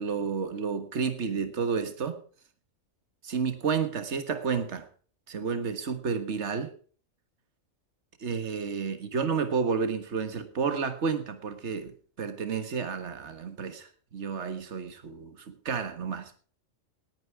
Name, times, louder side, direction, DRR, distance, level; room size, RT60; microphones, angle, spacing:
voice 1, 0.0-2.2 3.2-4.9 5.3-6.7 8.2-16.5, right 5 dB, 60° right, 9 dB, 1.8 m, -31 dB
19.0 x 9.3 x 4.8 m, 0.43 s
omnidirectional pair, 1.4 m